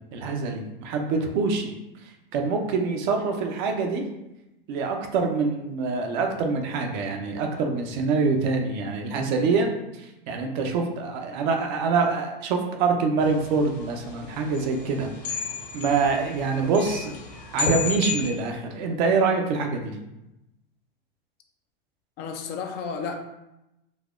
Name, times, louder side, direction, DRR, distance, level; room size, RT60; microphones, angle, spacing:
voice 1, 0.1-1.7 2.0-4.0 4.7-9.7 10.0-15.5 15.7-17.1 17.5-20.0, right 4 dB, 50° right, 3 dB, 0.7 m, -25 dB
sound 1, 13.2-18.3, left 4 dB, 60° left, 1.3 m, -32 dB
voice 2, 22.2-23.1, left 5 dB, 35° left, 4 dB, 0.4 m, -32 dB
4.1 x 2.7 x 2.4 m, 0.92 s
hypercardioid pair, 100°, 30 cm